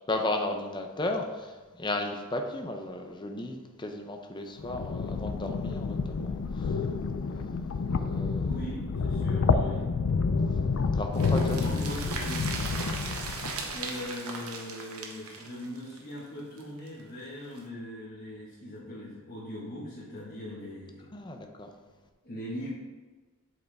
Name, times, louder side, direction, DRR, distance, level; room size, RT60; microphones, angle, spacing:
voice 1, 0.1-6.9 7.3-8.5 10.9-11.9 21.1-21.7, left 2 dB, 20° left, 4 dB, 0.6 m, -35 dB
sound 1, 4.6-13.8, left 4 dB, 65° left, 0.4 m, -29 dB
voice 2, 8.5-9.8 11.5-12.4 13.5-21.1 22.2-22.7, left 1 dB, 40° left, -9 dB, 1.6 m, -40 dB
sound 2, 11.1-16.9 17.2-17.3 17.6-17.7, right 4 dB, 70° right, 1.0 m, -38 dB
7.9 x 4.8 x 3.5 m, 1.3 s
head